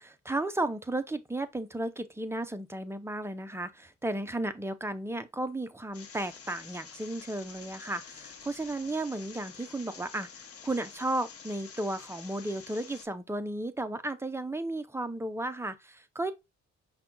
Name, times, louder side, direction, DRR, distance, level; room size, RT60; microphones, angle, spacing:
voice 1, 0.0-16.3, right 2 dB, 10° right, 0.5 m, -34 dB
sound 1, 5.9-13.1, left 6 dB, 50° left, 0.9 m, -48 dB
5.8 x 2.3 x 3.7 m
cardioid pair, 90°, 30 cm